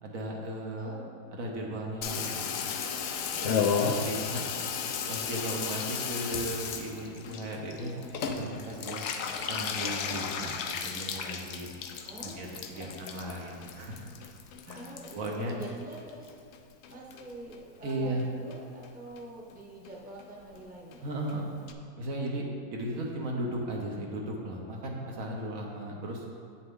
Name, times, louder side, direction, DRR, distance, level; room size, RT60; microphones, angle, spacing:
voice 1, 0.0-1.0 1.3-2.8 3.4-4.5 4.8-7.9 8.4-9.0 9.5-11.7 12.2-14.0 14.7-15.5 17.8-18.2 21.0-21.5 22.0-22.4 22.7-26.3, right 1 dB, 65° right, -1 dB, 1.3 m, -36 dB
voice 2, 0.8-1.1 3.3-4.2 7.7-8.1 8.5-8.8 12.0-13.1 14.7-16.3 16.9-21.1, right 1 dB, 5° right, -3 dB, 0.9 m, -46 dB
Water tap faucet / Bathtub (filling or washing), 2.0-16.6 16.8-17.6 17.9-18.0 18.2-18.3 18.5-18.9 19.2-19.3 19.5-19.6 19.9-20.0 20.2-20.3 20.5-20.6 20.9-21.0 21.3-21.4 21.7-21.8, left 6 dB, 70° left, 0.9 m, -34 dB
7.9 x 6.7 x 3.7 m, 2.2 s
omnidirectional pair, 1.6 m